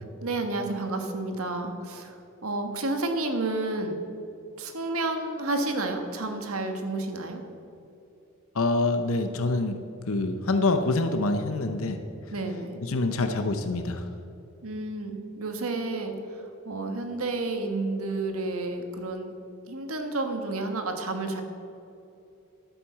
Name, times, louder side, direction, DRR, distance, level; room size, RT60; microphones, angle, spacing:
voice 1, 0.2-4.0 4.6-7.4 12.3-12.8 14.6-19.3 19.7-21.4, right 2 dB, 75° right, 5 dB, 1.5 m, -31 dB
voice 2, 8.5-9.8 10.1-12.0 12.8-14.1, left 2 dB, 70° left, 7 dB, 0.8 m, -26 dB
11.5 x 9.5 x 7.4 m, 2.7 s
head